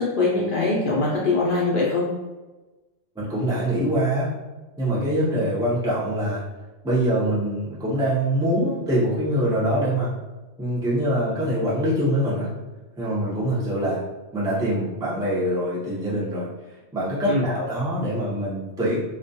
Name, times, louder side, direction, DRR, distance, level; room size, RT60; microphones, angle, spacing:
voice 1, 0.0-2.0 17.3-17.5, left 3 dB, 60° left, -5 dB, 0.6 m, -22 dB
voice 2, 3.2-4.3 4.8-6.4 6.8-10.1 10.6-12.5 13.0-14.0 14.3-16.5 16.9-19.0, right 1 dB, 5° right, -8 dB, 0.4 m, -24 dB
2.2 x 2.2 x 2.6 m, 1.2 s
omnidirectional pair, 1.2 m